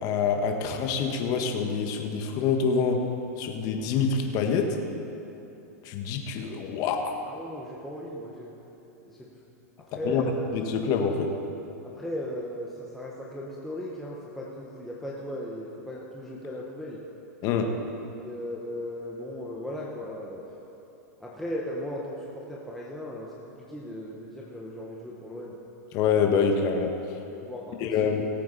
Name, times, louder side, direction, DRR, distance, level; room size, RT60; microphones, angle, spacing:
voice 1, 0.0-3.0 3.4-4.8 5.8-7.1 10.0-10.2 10.5-11.3 17.4-17.7 25.9-26.9 27.8-28.3, left 6 dB, 40° left, 4 dB, 1.4 m, -26 dB
voice 2, 7.3-8.5 9.0-9.3 9.9-10.5 11.8-17.0 18.2-20.5 21.2-25.6 27.4-27.9, left 1 dB, ahead, -5 dB, 1.2 m, -37 dB
18.5 x 8.4 x 4.1 m, 2.9 s
hypercardioid pair, 130°, 9 cm